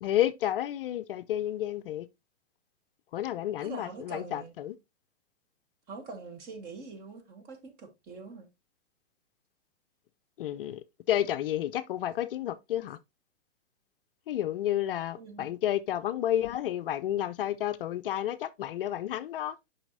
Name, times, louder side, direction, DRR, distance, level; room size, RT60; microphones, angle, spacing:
voice 1, 0.0-2.1 3.1-4.7 10.4-10.8 11.1-13.0 14.3-19.6, left 12 dB, 55° left, 0.5 m, -31 dB
voice 2, 3.6-4.5 5.9-8.5 15.2-15.5, right 4 dB, 25° right, 1.4 m, -44 dB
6.9 x 5.5 x 2.6 m
hypercardioid pair, 135°, 34 cm